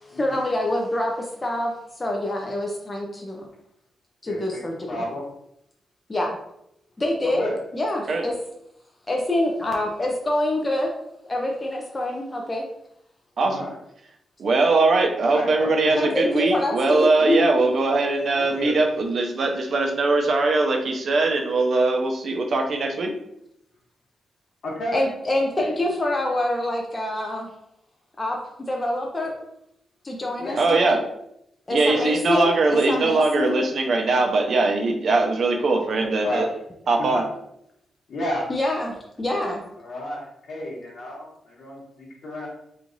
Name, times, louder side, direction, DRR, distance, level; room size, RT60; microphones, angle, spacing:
voice 1, 0.0-3.5 4.2-5.0 6.1-6.4 7.0-7.5 7.7-8.3 9.1-10.9 11.2-12.7 15.9-17.7 24.9-27.5 28.2-28.4 28.7-29.3 30.0-31.0 31.7-33.6 38.5-39.6, left 1 dB, 20° left, 0 dB, 0.5 m, -26 dB
voice 2, 4.2-4.6 4.9-5.2 7.2-7.5 13.4-13.8 15.3-16.2 18.3-18.7 24.6-25.0 25.6-25.7 30.4-30.6 31.7-32.1 32.6-32.9 36.2-36.4 37.1-37.2 38.1-38.4 39.8-42.5, left 1 dB, 60° left, -3 dB, 1.2 m, -32 dB
voice 3, 13.4-13.7 14.4-23.1 30.6-31.0 31.7-36.5 36.9-37.3, right 3 dB, 55° right, 3 dB, 0.5 m, -21 dB
3.1 x 2.5 x 3.8 m, 0.77 s
wide cardioid pair, 125°, 0 cm